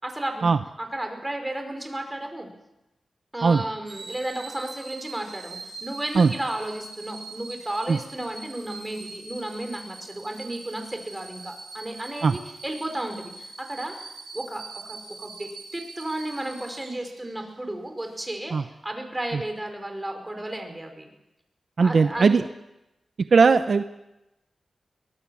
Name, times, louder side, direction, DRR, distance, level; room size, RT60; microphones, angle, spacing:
voice 1, 0.0-0.5 0.8-2.5 3.3-13.9 14.3-21.1 21.8-22.3, right 1 dB, 15° right, 5 dB, 5.3 m, -33 dB
kettle whistles as water boils, 3.8-17.5 18.0-18.2, right 3 dB, 80° right, 7.4 m, -43 dB
voice 2, 21.8-22.4 23.3-23.8, right 4 dB, 65° right, 10 dB, 0.8 m, -18 dB
23.5 x 18.5 x 7.3 m, 0.94 s
wide cardioid pair, 85°, 0 cm